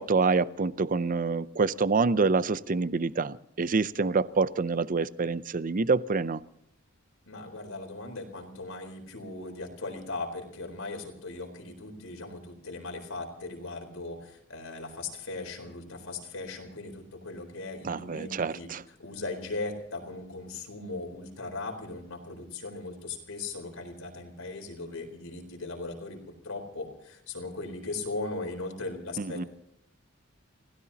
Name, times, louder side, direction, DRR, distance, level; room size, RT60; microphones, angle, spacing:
voice 1, 0.0-6.4 17.8-18.8 29.2-29.4, right 4 dB, 40° right, 16 dB, 0.6 m, -27 dB
voice 2, 7.3-18.7 19.0-26.2 26.4-29.5, left 3 dB, 85° left, 2 dB, 4.2 m, -38 dB
30.0 x 17.0 x 2.9 m, 0.77 s
head